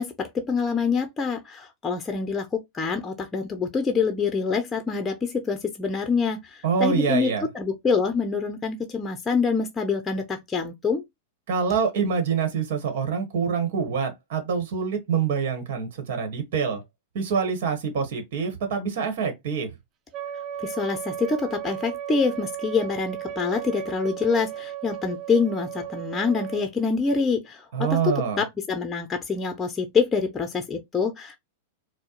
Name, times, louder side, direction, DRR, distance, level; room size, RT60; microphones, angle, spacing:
voice 1, 0.0-11.0 20.6-31.4, left 5 dB, 15° left, 0.6 m, -26 dB
voice 2, 6.6-7.4 11.5-16.8 17.1-19.7 27.7-28.4, right 6 dB, 65° right, 1.2 m, -26 dB
Wind instrument woodwind instrument, 20.1-26.7, right 11 dB, 40° right, 0.9 m, -35 dB
4.4 x 2.1 x 3.0 m
hypercardioid pair, 110°, 0 cm